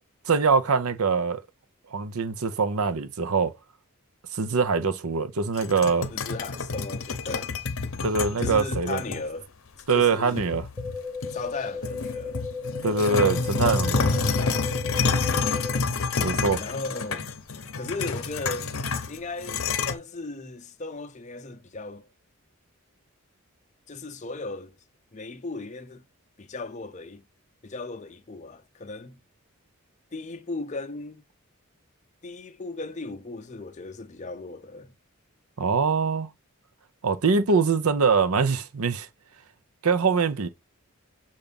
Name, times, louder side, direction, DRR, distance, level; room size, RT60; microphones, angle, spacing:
voice 1, 0.3-1.4 1.9-3.5 4.3-6.1 8.0-9.0 9.9-10.7 12.8-14.2 16.2-16.6 35.6-36.3 37.0-39.1 39.8-40.5, right 5 dB, 80° right, 0.7 m, -23 dB
sound 1, 5.5-9.2 9.8-9.9 10.4-11.5 11.8-19.9, left 4 dB, 65° left, 0.8 m, -28 dB
voice 2, 6.1-7.5 8.4-9.5 9.9-10.5 11.3-12.4 16.6-17.3 17.8-18.8 19.1-22.1 23.9-24.7 25.1-26.0 26.4-27.2 27.6-29.2 30.1-31.2 32.2-34.9, left 3 dB, 30° left, 0.6 m, -36 dB
sound 2, 10.8-15.8, left 5 dB, 5° right, 0.6 m, -35 dB
7.0 x 2.6 x 5.2 m
head